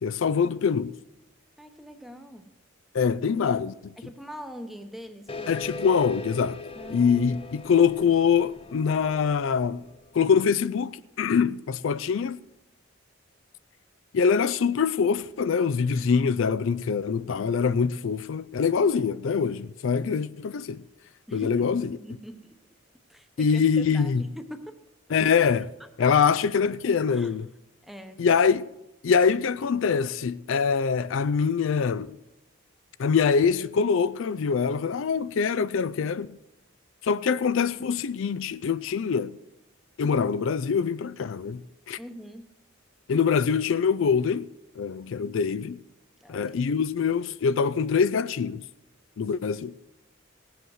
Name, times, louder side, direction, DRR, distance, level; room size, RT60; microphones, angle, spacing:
voice 1, 0.0-0.9 2.9-3.7 5.5-6.6 6.9-9.8 10.1-10.9 11.2-12.4 14.1-20.8 21.3-22.0 23.4-24.2 25.1-25.7 26.0-27.5 28.2-28.7 29.0-32.1 33.0-36.3 37.0-39.4 40.0-41.6 41.9-42.0 43.1-44.5 44.8-45.8 46.3-48.6 49.2-49.7, left 6 dB, 65° left, 0.4 m, -24 dB
voice 2, 1.6-2.5 4.0-5.6 6.7-7.2 15.9-16.0 21.3-22.5 23.1-24.8 25.1-25.2 25.8-26.1 27.1-27.3 27.8-28.2 42.0-42.5 46.2-46.5, equal, ahead, 0.9 m, -43 dB
sound 1, 5.3-10.4, left 2 dB, 25° left, 0.6 m, -40 dB
18.0 x 7.9 x 6.4 m
head